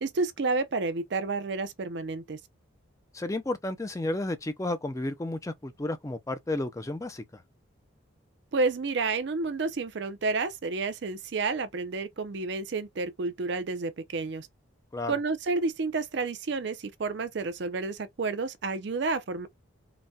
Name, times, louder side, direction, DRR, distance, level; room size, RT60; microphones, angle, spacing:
voice 1, 0.0-2.4 8.5-14.5 15.1-19.5, right 3 dB, 55° right, 0.5 m, -30 dB
voice 2, 3.1-7.4 14.9-15.1, left 2 dB, 15° left, 0.4 m, -32 dB
4.0 x 2.2 x 2.2 m
head